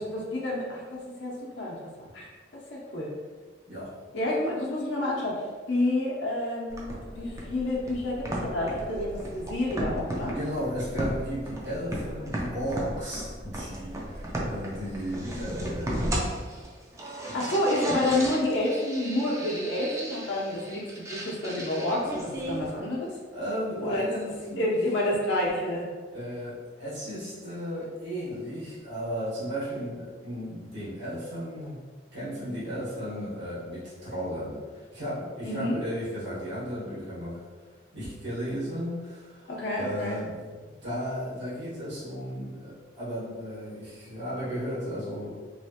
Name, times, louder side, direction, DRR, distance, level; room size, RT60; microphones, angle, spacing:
voice 1, 0.0-2.3 2.5-3.1 4.1-10.4 17.3-23.1 23.8-24.0 24.6-25.9 35.4-35.8 39.5-40.2, left 1 dB, 80° left, -5 dB, 0.7 m, -29 dB
sound 1, 6.7-22.7, right 1 dB, 15° right, 0.3 m, -35 dB
voice 2, 10.3-16.4 17.2-17.3 23.3-24.8 26.1-31.8 32.1-37.4 37.9-45.4, equal, 80° right, -10 dB, 1.5 m, -35 dB
3.0 x 2.4 x 2.8 m, 1.4 s
head